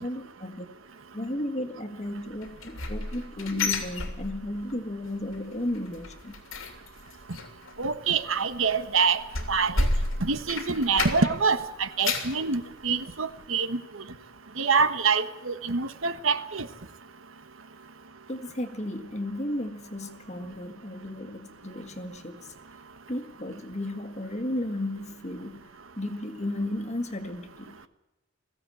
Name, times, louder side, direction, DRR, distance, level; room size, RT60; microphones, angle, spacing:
voice 1, 0.0-0.7 1.1-6.3 18.3-22.5 23.1-25.7 26.0-27.8, left 1 dB, 35° left, 8 dB, 1.8 m, -34 dB
sound 1, 2.4-4.7 5.0-5.4 5.7-11.5 11.8-12.4 12.9-13.0 13.4-13.5, left 2 dB, 80° left, 3.1 m, -31 dB
voice 2, 7.8-9.2 9.5-9.9 10.2-13.8 14.6-16.7, right 5 dB, 75° right, 11 dB, 1.3 m, -25 dB
21.5 x 16.0 x 8.5 m, 1.0 s
head